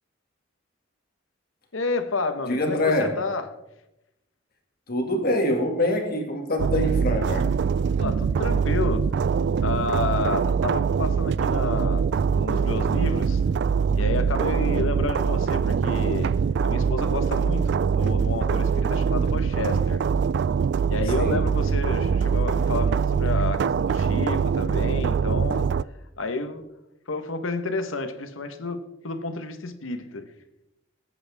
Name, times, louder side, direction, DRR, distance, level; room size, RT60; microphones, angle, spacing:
voice 1, 1.7-3.5 8.0-13.4 13.9-20.0 20.9-25.7 26.2-26.7 27.1-30.3, left 3 dB, 85° left, 1.2 m, -30 dB
voice 2, 2.5-3.2 4.9-7.5 21.1-21.5, left 1 dB, 50° left, 2.2 m, -25 dB
sound 1, 6.6-25.8, right 6 dB, 60° right, 0.3 m, -23 dB
19.0 x 8.9 x 3.5 m
head